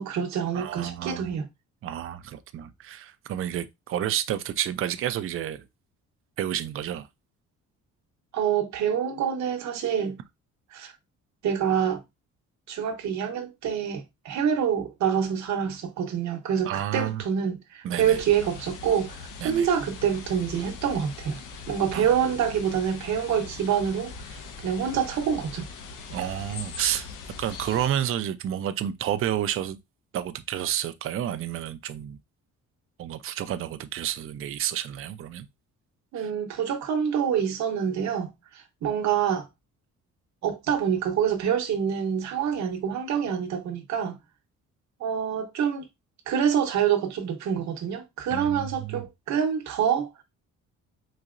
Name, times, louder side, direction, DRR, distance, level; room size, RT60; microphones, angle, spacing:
voice 1, 0.0-1.5 8.3-10.2 10.7-10.9 11.4-12.0 12.7-21.4 21.7-25.7 36.1-39.5 40.4-44.2 45.0-45.9 46.3-50.2, right 8 dB, 60° right, 0.9 m, -26 dB
voice 2, 0.5-1.3 1.8-5.7 6.4-7.1 16.6-17.2 17.8-18.2 19.4-19.7 21.9-22.1 26.1-27.1 27.4-29.8 30.1-32.2 33.0-35.5 36.2-36.3 48.3-49.0, right 11 dB, 45° right, 0.4 m, -30 dB
sound 1, 18.0-27.9, left 4 dB, 80° left, 0.9 m, -41 dB
4.1 x 2.7 x 2.5 m
cardioid pair, 105°, 31 cm